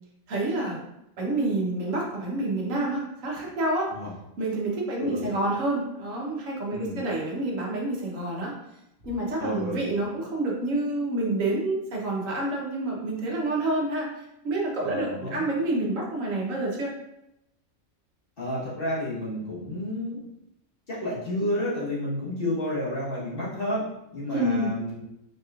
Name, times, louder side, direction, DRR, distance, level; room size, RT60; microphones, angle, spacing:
voice 1, 0.3-0.8 1.2-3.9 4.4-8.5 9.0-16.9 24.3-24.8, right 2 dB, 75° right, -2 dB, 1.3 m, -28 dB
voice 2, 4.9-5.4 6.7-7.0 9.4-9.9 14.8-15.5 18.4-20.2 20.9-23.9 24.1-25.0, left 1 dB, 45° left, -8 dB, 1.4 m, -31 dB
5.1 x 2.9 x 2.4 m, 0.85 s
omnidirectional pair, 1.4 m